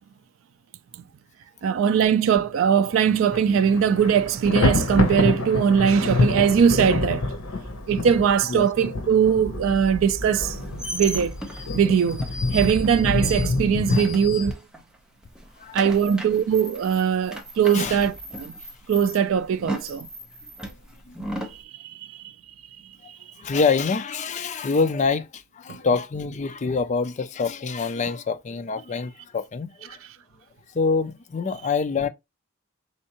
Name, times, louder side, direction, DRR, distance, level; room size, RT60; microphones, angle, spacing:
voice 1, 1.6-7.3 7.9-11.3 11.7-12.2 12.5-14.6 15.7-18.5 18.9-20.1 21.5-22.2 23.1-23.2 25.7-25.8, right 7 dB, 65° right, 0.3 m, -21 dB
Thunder, 3.1-3.4 3.7-14.5, left 2 dB, 80° left, 0.7 m, -27 dB
sound 1, 5.1-5.4 6.4-8.4 9.4-11.4 12.4-13.7, equal, 25° right, 1.7 m, -38 dB
sound 2, 10.3-15.0 15.2-21.6, equal, 5° right, 0.7 m, -36 dB
voice 2, 21.1-21.4 23.4-30.0 30.7-32.1, left 4 dB, 35° left, 0.4 m, -26 dB
4.3 x 3.6 x 2.9 m
head